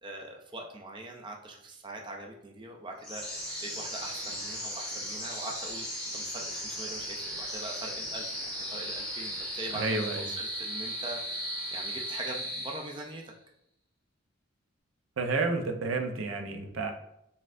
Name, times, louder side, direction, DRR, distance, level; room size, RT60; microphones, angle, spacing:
voice 1, 0.0-13.2, right 2 dB, 25° right, 2 dB, 0.4 m, -42 dB
sound 1, 3.0-13.2, equal, 5° left, 1.3 m, -36 dB
voice 2, 9.7-10.2 15.2-16.9, right 3 dB, 85° right, 5 dB, 0.5 m, -30 dB
4.2 x 3.6 x 2.5 m, 0.78 s
head